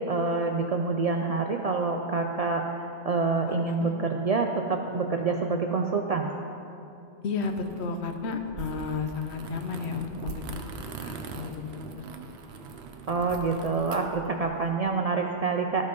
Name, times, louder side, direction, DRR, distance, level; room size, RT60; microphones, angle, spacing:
voice 1, 0.0-6.3 13.1-15.9, right 4 dB, 55° right, 3 dB, 0.4 m, -27 dB
voice 2, 7.2-11.6 12.0-12.1, left 4 dB, 80° left, 6 dB, 1.0 m, -33 dB
sound 1, 7.4-14.6, right 4 dB, 90° right, 1.0 m, -42 dB
13.0 x 5.4 x 5.2 m, 2.7 s
omnidirectional pair, 1.1 m